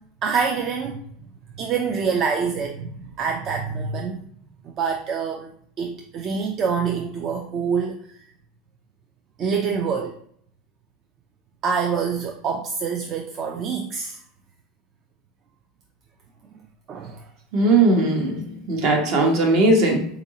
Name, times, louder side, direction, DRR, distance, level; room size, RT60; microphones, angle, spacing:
voice 1, 0.2-1.0 1.6-4.2 4.6-5.5 5.8-8.0 9.4-10.1 11.6-14.2 16.9-17.3, right 6 dB, 40° right, 2 dB, 0.4 m, -26 dB
voice 2, 17.5-20.0, right 2 dB, 60° right, 1 dB, 1.0 m, -19 dB
3.8 x 2.6 x 2.8 m, 0.64 s
supercardioid pair, 115°, 0 cm